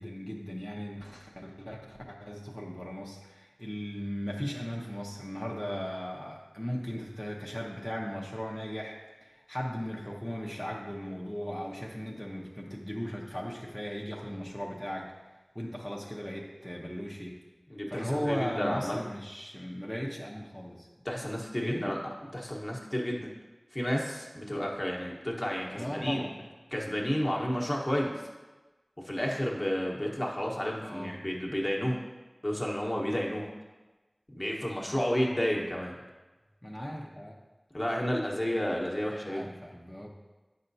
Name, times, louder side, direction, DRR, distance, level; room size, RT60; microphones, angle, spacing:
voice 1, 0.0-15.1 15.5-17.4 17.9-20.9 21.6-21.9 25.7-26.4 30.8-31.2 36.6-37.3 39.3-40.1, equal, ahead, -3 dB, 0.8 m, -37 dB
voice 2, 17.7-19.0 21.0-22.0 22.3-23.3 23.7-26.2 26.7-28.1 29.0-32.0 32.4-33.5 34.3-35.9 37.7-39.5, equal, 35° left, -2 dB, 1.1 m, -31 dB
8.5 x 5.5 x 2.7 m, 1.2 s
wide cardioid pair, 45°, 0 cm